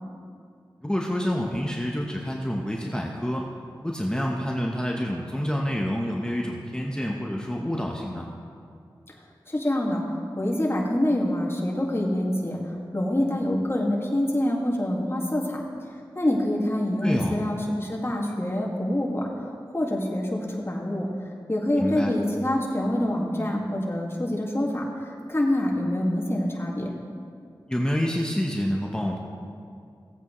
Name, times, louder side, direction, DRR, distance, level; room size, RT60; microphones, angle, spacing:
voice 1, 0.8-3.5 3.8-8.3 17.0-17.4 21.8-22.1 27.7-29.2, equal, 10° left, -1 dB, 1.0 m, -27 dB
voice 2, 9.5-10.0 10.4-12.6 12.9-15.6 16.2-19.3 19.7-21.1 21.5-26.9, left 1 dB, 30° left, -2 dB, 2.0 m, -26 dB
16.5 x 8.3 x 3.2 m, 2.4 s
wide cardioid pair, 55°, 9 cm